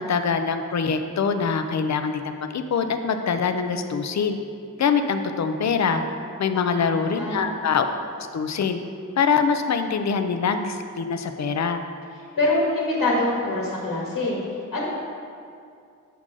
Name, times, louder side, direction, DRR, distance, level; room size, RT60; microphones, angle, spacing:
voice 1, 0.0-4.4 4.8-6.0 6.4-7.9 8.3-8.8 9.2-11.8, left 5 dB, 55° left, 8 dB, 0.5 m, -24 dB
voice 2, 6.5-6.9 7.1-7.5 12.2-14.9, left 2 dB, 90° left, -4 dB, 1.6 m, -25 dB
8.0 x 3.8 x 6.2 m, 2.4 s
wide cardioid pair, 150°, 32 cm